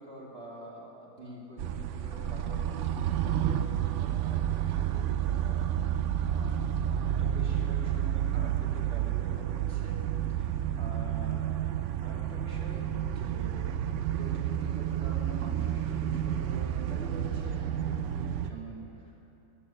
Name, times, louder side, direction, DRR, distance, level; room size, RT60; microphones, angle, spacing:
voice 1, 0.0-5.9 6.2-11.5 12.0-13.7 14.2-19.1, right 1 dB, 35° right, -4 dB, 2.9 m, -46 dB
sound 1, 1.6-18.5, right 10 dB, 75° right, 0.6 m, -30 dB
13.5 x 9.4 x 8.6 m, 2.8 s
omnidirectional pair, 1.8 m